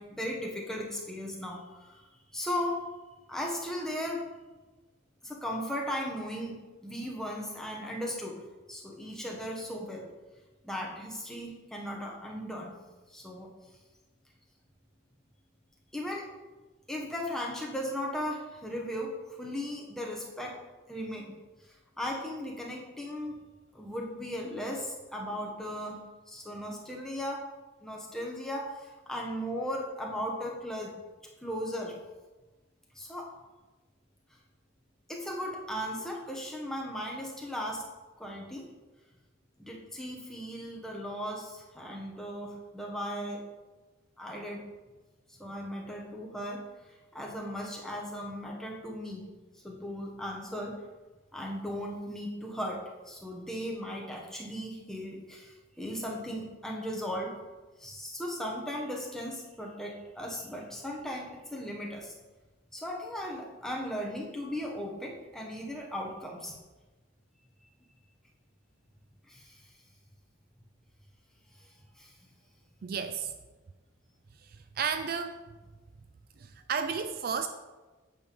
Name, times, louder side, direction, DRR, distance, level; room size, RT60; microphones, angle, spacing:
voice 1, 0.0-2.1 2.3-2.8 3.3-4.2 5.2-8.4 8.7-10.1 10.6-12.7 13.1-13.5 15.9-16.3 16.9-20.6 20.9-21.3 22.0-23.4 23.7-26.0 26.3-27.4 27.8-30.9 31.4-31.9 32.9-33.3 35.1-37.8 38.2-38.6 39.6-43.4 44.2-44.6 45.4-46.6 47.1-49.2 49.6-50.8 51.3-57.3 57.8-62.1 62.7-66.5 69.3-69.6 71.6-71.7 72.0-72.1, equal, ahead, -2 dB, 1.1 m, -37 dB
voice 2, 72.8-73.4 74.4-75.4 76.4-77.5, right 6 dB, 45° right, 8 dB, 0.4 m, -33 dB
8.7 x 3.5 x 6.8 m, 1.2 s
head